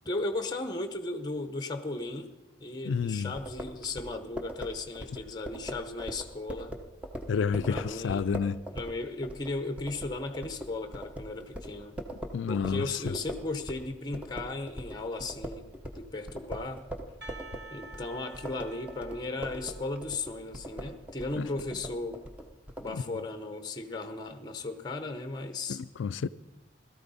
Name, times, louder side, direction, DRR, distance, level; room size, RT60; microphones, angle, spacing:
voice 1, 0.0-2.3 2.6-6.7 7.6-8.2 8.7-11.9 12.5-15.7 15.9-16.8 17.7-22.2 22.8-25.8, left 2 dB, 20° left, 0.7 m, -36 dB
voice 2, 2.8-3.4 7.3-8.6 12.3-13.1 21.4-21.5 22.9-23.0 25.7-26.3, left 6 dB, 75° left, 0.4 m, -30 dB
sound 1, 3.4-13.9 14.1-22.9, equal, 5° right, 0.8 m, -41 dB
Percussion, 17.2-21.1, right 3 dB, 60° right, 1.1 m, -50 dB
16.5 x 13.5 x 4.1 m
head